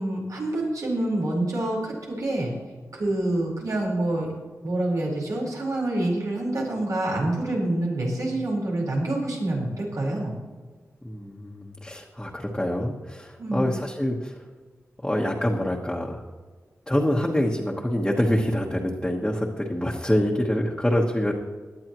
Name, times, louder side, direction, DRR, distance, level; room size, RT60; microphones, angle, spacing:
voice 1, 0.0-2.6 2.9-4.3 4.6-10.3 13.4-13.7, right 1 dB, 90° right, -3 dB, 4.6 m, -27 dB
voice 2, 11.0-14.3 15.0-16.2 16.9-21.3, left 1 dB, 10° left, -3 dB, 1.3 m, -25 dB
18.0 x 11.5 x 3.1 m, 1.4 s
wide cardioid pair, 105°, 6 cm